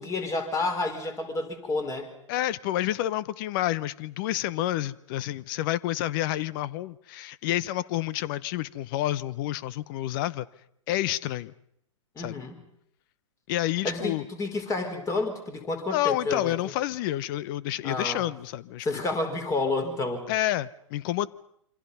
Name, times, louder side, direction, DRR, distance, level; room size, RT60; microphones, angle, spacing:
voice 1, 0.0-2.1 12.2-12.6 13.8-16.5 17.8-18.2 18.8-20.3, left 3 dB, 20° left, 7 dB, 4.6 m, -30 dB
voice 2, 2.3-10.5 10.9-11.5 12.2-12.4 13.5-14.3 15.9-19.0 20.3-21.3, left 14 dB, 40° left, 19 dB, 0.8 m, -29 dB
27.5 x 26.0 x 5.6 m, 0.73 s
figure-of-eight pair, 115°, 16 cm